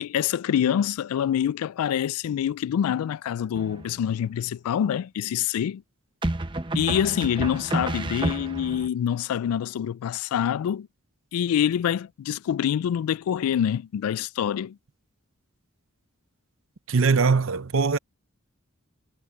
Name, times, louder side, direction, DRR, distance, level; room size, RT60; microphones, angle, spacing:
voice 1, 0.0-5.8 6.7-10.9 11.3-14.8, left 9 dB, 90° left, 0.3 m, -26 dB
sound 1, 3.6-4.2 6.2-8.9, right 2 dB, 20° right, 0.8 m, -30 dB
voice 2, 16.9-18.0, right 4 dB, 65° right, 0.7 m, -21 dB
head